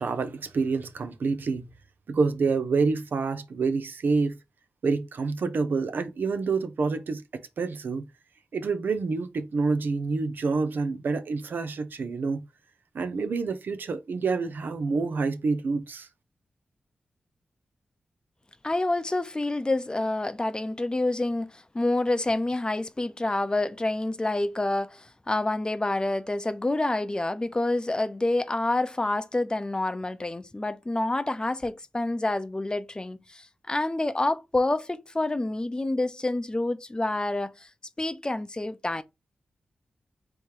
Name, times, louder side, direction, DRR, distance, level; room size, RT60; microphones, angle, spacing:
voice 1, 0.0-1.7 2.1-4.4 4.8-7.2 7.6-8.0 8.5-12.4 12.9-16.1, right 4 dB, 70° right, 0.6 m, -27 dB
voice 2, 18.6-37.5 38.0-39.0, left 2 dB, 25° left, 0.6 m, -28 dB
3.5 x 3.1 x 4.5 m
cardioid pair, 45°, 3 cm